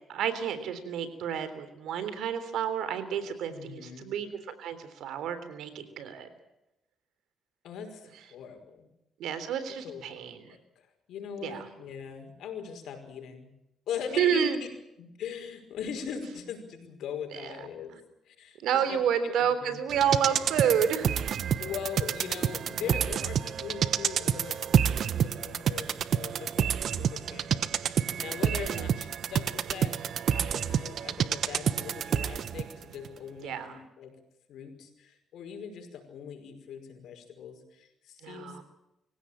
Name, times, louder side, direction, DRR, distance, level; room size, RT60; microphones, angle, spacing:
voice 1, 0.1-6.3 9.2-10.6 11.4-11.7 14.2-14.6 17.4-17.5 18.6-21.4 28.7-28.9 33.4-33.7 38.2-38.6, right 8 dB, 80° right, 12 dB, 3.5 m, -30 dB
voice 2, 3.5-4.1 7.6-8.9 9.8-13.5 13.9-14.5 15.0-18.0 18.3-18.6 18.9-19.8 21.6-30.0 30.3-34.2 34.5-38.6, left 7 dB, 75° left, 6 dB, 5.3 m, -41 dB
sound 1, 19.9-32.7 33.1-33.2, right 8 dB, 65° right, 1.0 m, -29 dB
25.5 x 16.5 x 8.9 m, 0.87 s
cardioid pair, 90°, 0 cm